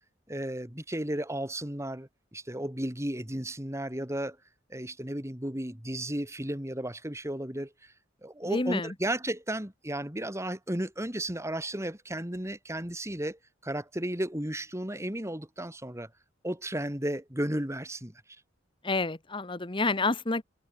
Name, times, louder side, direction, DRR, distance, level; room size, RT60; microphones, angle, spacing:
voice 1, 0.3-4.4 4.7-7.9 8.2-16.1 16.4-18.1, right 1 dB, 15° right, 3.3 m, -34 dB
voice 2, 8.4-8.9 18.8-20.4, left 3 dB, 25° left, 1.2 m, -29 dB
head